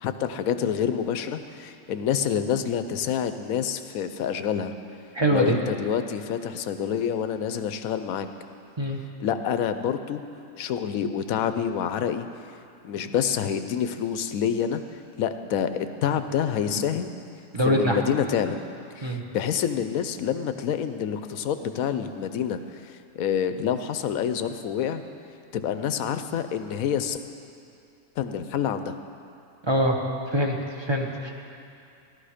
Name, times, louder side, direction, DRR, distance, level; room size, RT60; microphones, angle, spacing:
voice 1, 0.0-4.7 5.3-8.3 9.2-10.2 10.6-12.3 12.8-14.8 15.2-17.1 17.6-18.6 19.0-22.6 23.1-25.0 25.5-27.2 28.2-29.0, left 8 dB, 70° left, 9 dB, 1.0 m, -27 dB
voice 2, 5.1-5.6 8.8-9.0 17.5-18.0 19.0-19.2 29.7-30.0 30.3-31.3, equal, 20° right, 1 dB, 1.0 m, -23 dB
15.0 x 12.5 x 5.0 m, 2.6 s
omnidirectional pair, 1.7 m